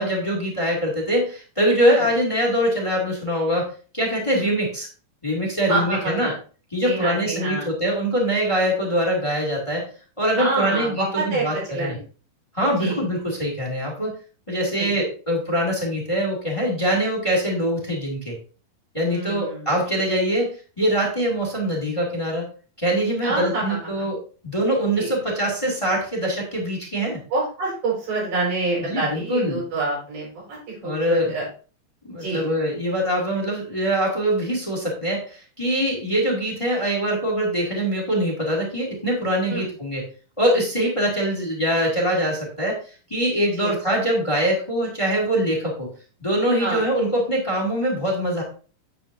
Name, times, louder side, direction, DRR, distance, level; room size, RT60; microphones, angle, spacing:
voice 1, 0.0-3.7 3.9-4.9 5.2-6.3 6.7-9.8 10.2-12.0 12.5-14.1 14.5-18.3 18.9-22.5 22.8-24.2 24.4-27.2 28.9-29.6 30.8-31.3 32.1-40.0 40.4-42.8 43.1-45.9 46.2-48.4, equal, 10° left, 0 dB, 1.7 m, -23 dB
voice 2, 1.8-2.1 4.4-4.6 5.7-6.3 6.8-7.7 10.4-12.0 12.8-13.0 14.8-14.9 19.1-19.8 23.2-24.1 25.0-25.2 27.1-31.4 32.2-32.4 39.5-39.7 43.6-43.7 46.6-46.8, right 3 dB, 65° right, -4 dB, 6.3 m, -27 dB
9.2 x 9.1 x 2.7 m, 0.38 s
omnidirectional pair, 4.0 m